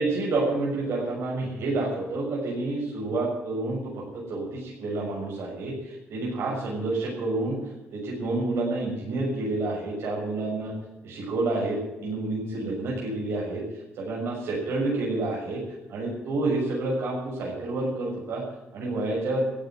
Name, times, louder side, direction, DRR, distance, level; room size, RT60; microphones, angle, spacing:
voice 1, 0.0-3.8 4.3-7.6 7.9-10.7 11.0-13.6 14.0-15.6 15.9-18.4 18.7-19.4, right 2 dB, 65° right, -4 dB, 6.5 m, -29 dB
14.5 x 9.6 x 9.4 m, 1.0 s
cardioid pair, 120°, 5 cm